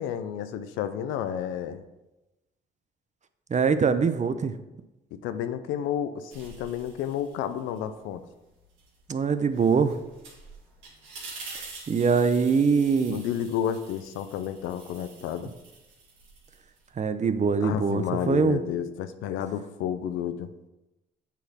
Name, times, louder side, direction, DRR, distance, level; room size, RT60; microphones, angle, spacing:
voice 1, 0.0-1.8 5.1-8.2 13.1-15.5 17.6-20.5, left 9 dB, 90° left, 11 dB, 0.5 m, -31 dB
voice 2, 3.5-4.5 9.1-10.0 11.9-13.2 17.0-18.6, right 5 dB, 35° right, 11 dB, 0.6 m, -23 dB
sound 1, 6.3-7.9 8.2-16.9, right 3 dB, 80° right, 2.1 m, -47 dB
8.2 x 4.0 x 4.2 m, 1.0 s
supercardioid pair, 60°, 20 cm